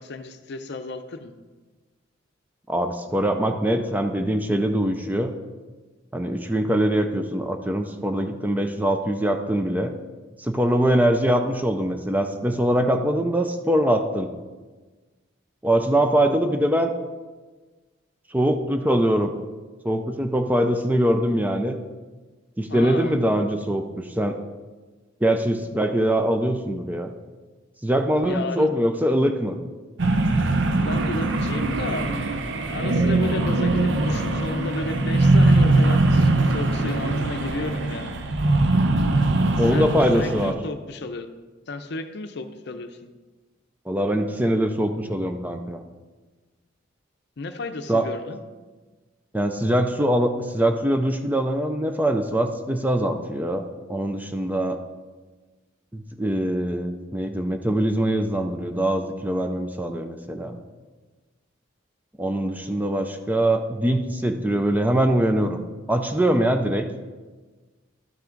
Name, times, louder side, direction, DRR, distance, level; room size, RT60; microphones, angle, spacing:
voice 1, 0.0-1.3 22.7-23.1 28.2-28.7 30.8-32.3 32.7-38.1 39.6-41.3 41.7-43.1 47.4-48.4, left 3 dB, 60° left, 8 dB, 0.6 m, -33 dB
voice 2, 2.7-5.3 6.1-9.9 10.4-14.3 15.6-16.9 18.3-19.3 19.8-21.8 22.6-24.4 25.2-27.1 27.8-29.6 39.6-40.6 43.9-45.8 47.9-48.1 49.3-54.8 55.9-60.6 62.2-65.6 65.9-66.9, right 1 dB, 10° right, 6 dB, 0.4 m, -23 dB
sound 1, 30.0-40.5, right 2 dB, 60° right, 0.7 m, -21 dB
12.0 x 5.9 x 3.8 m, 1.3 s
head